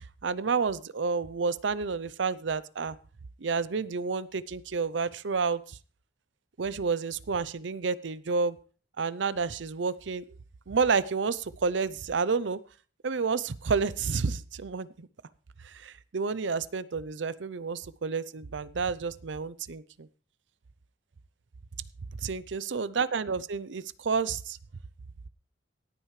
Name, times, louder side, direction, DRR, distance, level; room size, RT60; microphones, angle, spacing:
voice 1, 0.2-3.0 3.4-5.8 6.6-8.6 9.0-10.2 10.7-12.6 13.0-15.1 15.6-20.1 22.2-24.6, right 5 dB, 80° right, 17 dB, 0.6 m, -30 dB
17.5 x 9.0 x 3.2 m, 0.38 s
head